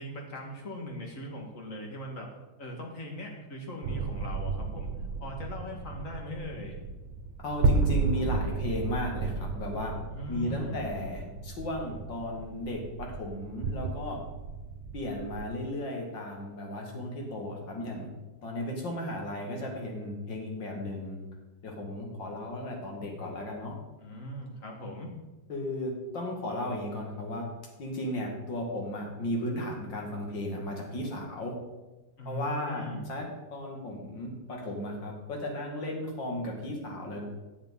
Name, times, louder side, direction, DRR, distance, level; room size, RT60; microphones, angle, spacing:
voice 1, 0.0-2.3 2.6-4.9 5.2-6.8 10.1-10.8 24.0-25.1 32.2-33.0, left 1 dB, 40° left, 0 dB, 2.1 m, -39 dB
sound 1, 3.8-15.5, right 3 dB, 75° right, 1.6 m, -33 dB
voice 2, 7.4-9.9 10.3-14.2 14.9-18.1 18.4-21.2 21.6-23.8 25.5-27.5 27.8-31.6 32.2-37.2, left 1 dB, 65° left, 0 dB, 2.8 m, -35 dB
10.0 x 7.4 x 5.4 m, 1.1 s
omnidirectional pair, 2.2 m